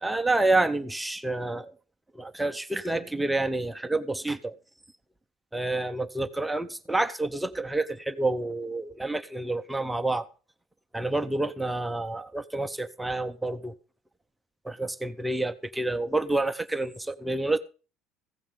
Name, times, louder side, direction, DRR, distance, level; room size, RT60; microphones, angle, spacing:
voice 1, 0.0-1.7 2.1-4.6 5.5-10.3 10.9-13.7 14.6-17.6, right 2 dB, 5° right, 0.7 m, -28 dB
16.0 x 5.4 x 7.4 m
cardioid pair, 135°, 0 cm